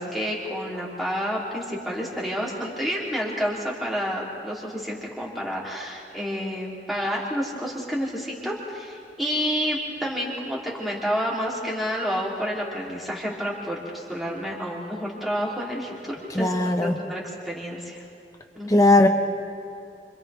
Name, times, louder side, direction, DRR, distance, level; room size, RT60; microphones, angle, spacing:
voice 1, 0.0-16.5 16.8-18.0 18.5-18.9, equal, ahead, -5 dB, 3.5 m, -29 dB
voice 2, 16.3-17.0 18.7-19.1, left 2 dB, 20° left, 3 dB, 1.2 m, -18 dB
30.0 x 26.5 x 3.6 m, 2.6 s
head